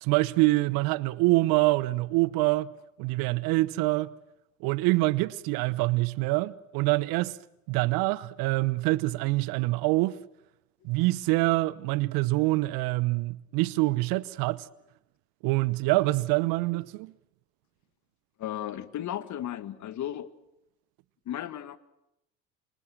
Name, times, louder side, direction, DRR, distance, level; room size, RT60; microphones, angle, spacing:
voice 1, 0.0-2.7 3.0-4.1 4.6-7.4 7.7-10.2 10.8-14.6 15.4-17.1, right 21 dB, 60° right, 1.0 m, -25 dB
voice 2, 18.4-20.3 21.3-21.8, left 11 dB, 45° left, 1.8 m, -35 dB
28.5 x 25.5 x 6.3 m
hypercardioid pair, 70°, 39 cm